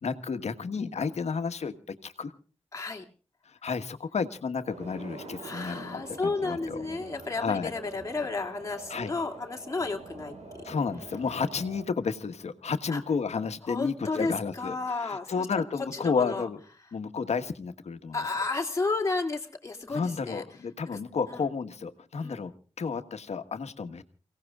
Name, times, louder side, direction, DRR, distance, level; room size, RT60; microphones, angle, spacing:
voice 1, 0.0-2.3 3.4-6.8 7.4-7.7 8.9-9.1 10.6-16.6 16.9-18.2 19.9-22.5 22.8-24.0, left 5 dB, 80° left, 8 dB, 1.4 m, -32 dB
voice 2, 2.7-3.0 5.4-10.3 12.9-13.0 13.7-15.5 15.9-16.5 18.1-20.4 20.9-21.0 21.3-21.4 22.2-22.4, left 3 dB, 30° left, 1 dB, 2.7 m, -32 dB
sound 1, 4.6-11.8, right 2 dB, 80° right, 4.0 m, -45 dB
29.5 x 17.5 x 2.4 m, 0.38 s
wide cardioid pair, 155°, 11 cm